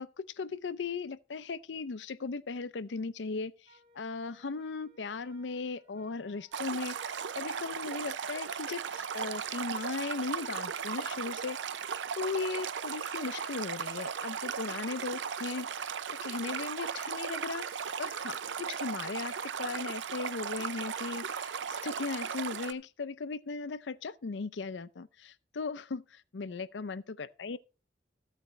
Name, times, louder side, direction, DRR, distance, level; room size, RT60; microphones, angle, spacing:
voice 1, 0.0-11.6 12.1-15.7 16.1-27.6, left 4 dB, 85° left, 0.5 m, -37 dB
Wind instrument woodwind instrument, 3.7-7.6, right 1 dB, 25° right, 1.4 m, -64 dB
Stream, 6.5-22.7, right 7 dB, 90° right, 0.5 m, -37 dB
14.0 x 8.3 x 3.2 m
head